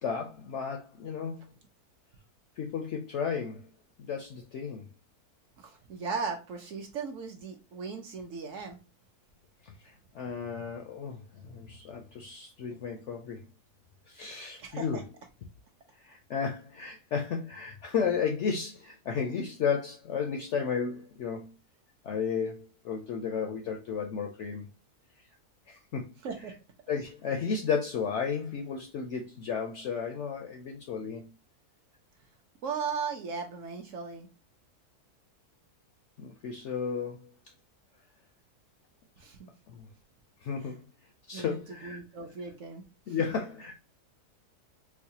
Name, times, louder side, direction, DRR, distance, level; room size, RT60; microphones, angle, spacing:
voice 1, 0.0-1.4 2.6-3.6 4.0-4.8 9.6-13.4 14.1-15.0 16.0-21.5 22.0-24.7 25.7-26.1 26.9-31.3 36.2-37.3 39.7-39.9 40.4-40.8 41.3-42.0 43.1-43.8, left 6 dB, 70° left, 0.7 m, -33 dB
voice 2, 5.6-8.8 14.6-15.0 26.2-26.5 32.6-34.3 39.2-39.5 41.3-41.6 41.8-42.8, right 5 dB, 65° right, 0.8 m, -37 dB
4.6 x 2.1 x 2.6 m
omnidirectional pair, 1.7 m